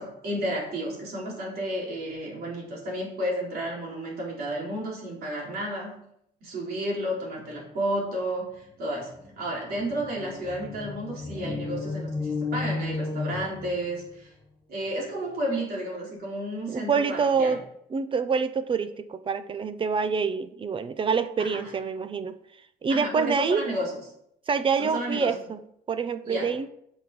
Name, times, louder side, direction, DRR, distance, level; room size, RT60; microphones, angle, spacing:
voice 1, 0.0-6.0 6.4-8.5 8.8-14.3 14.7-17.6 21.4-21.6 22.9-24.0 24.8-25.3 26.2-26.5, right 1 dB, 65° right, -3 dB, 4.0 m, -32 dB
sound 1, 8.7-8.8 9.0-14.1, left 3 dB, 20° left, 2.0 m, -33 dB
voice 2, 16.7-17.6 17.9-22.4 22.8-23.6 24.5-25.6 25.9-26.7, right 5 dB, 30° right, 13 dB, 0.7 m, -26 dB
7.9 x 6.3 x 5.3 m, 0.73 s
cardioid pair, 110°, 17 cm